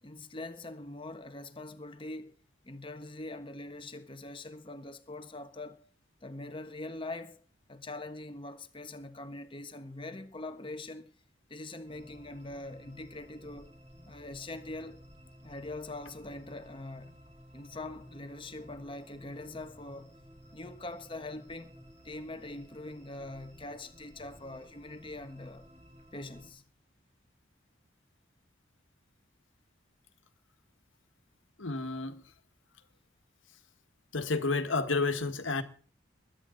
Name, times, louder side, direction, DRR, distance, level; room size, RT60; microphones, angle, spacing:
voice 1, 0.0-2.3 2.6-5.9 6.2-7.4 7.7-11.1 11.5-13.7 14.0-15.0 15.4-17.2 17.5-20.1 20.5-21.7 22.0-25.7 26.1-26.6, left 2 dB, 25° left, 1.3 m, -43 dB
sound 1, 11.9-26.5, equal, 35° right, 4.3 m, -55 dB
voice 2, 31.6-32.2 34.1-35.6, left 3 dB, 90° left, 1.7 m, -30 dB
21.5 x 10.5 x 4.0 m
head